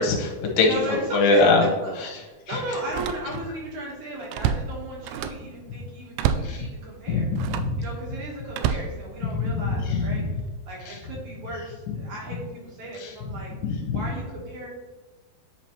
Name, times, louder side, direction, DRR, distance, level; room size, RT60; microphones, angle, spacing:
voice 1, 0.0-0.7 1.1-1.7 2.0-2.1 2.5-2.6 6.4-6.7 7.1-7.8 9.4-10.2 13.0-13.1 13.6-14.0, left 3 dB, 65° left, 1 dB, 2.5 m, -22 dB
voice 2, 0.6-7.3 7.8-10.2 10.7-13.5 13.9-14.7, right 1 dB, 60° right, -3 dB, 2.3 m, -36 dB
Slam, 0.7-0.9 1.4-1.5 2.8-3.6 4.0-5.5 6.1-6.6 7.3-7.8 8.5-9.6 10.2-10.5, right 8 dB, 85° right, 2.5 m, -29 dB
9.9 x 5.1 x 3.0 m, 1.2 s
omnidirectional pair, 4.8 m